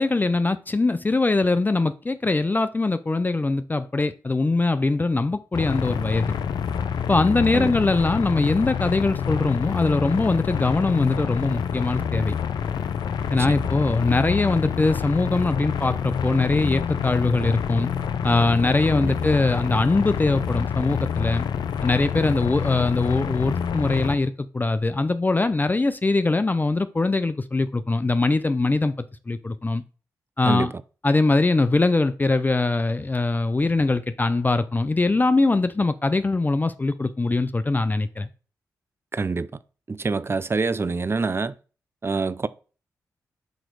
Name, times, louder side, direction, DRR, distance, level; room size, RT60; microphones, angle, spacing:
voice 1, 0.0-6.3 7.1-12.4 13.3-17.9 18.2-21.5 21.8-29.8 30.4-30.7 31.0-38.3, left 3 dB, 25° left, 0.5 m, -22 dB
sound 1, 5.5-24.2, left 7 dB, 75° left, 0.5 m, -27 dB
voice 2, 39.1-39.5 39.9-41.5 42.0-42.5, right 4 dB, 35° right, 0.5 m, -26 dB
7.8 x 3.1 x 4.6 m
supercardioid pair, 45°, 7 cm